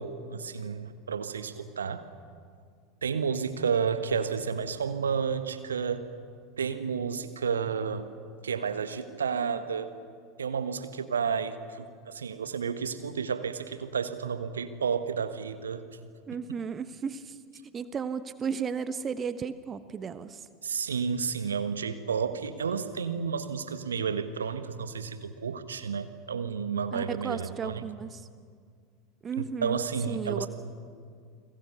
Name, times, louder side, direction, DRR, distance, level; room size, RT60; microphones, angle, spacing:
voice 1, 0.0-2.1 3.0-6.1 6.6-8.1 8.4-9.9 10.4-15.8 20.6-27.8 29.4-30.5, right 6 dB, 75° right, 10 dB, 1.4 m, -31 dB
voice 2, 16.3-17.4 17.7-20.5 26.9-28.3 29.2-29.8 30.1-30.5, right 6 dB, 25° right, 12 dB, 1.1 m, -34 dB
30.0 x 22.0 x 7.0 m, 2.1 s
figure-of-eight pair, 80°, 0 cm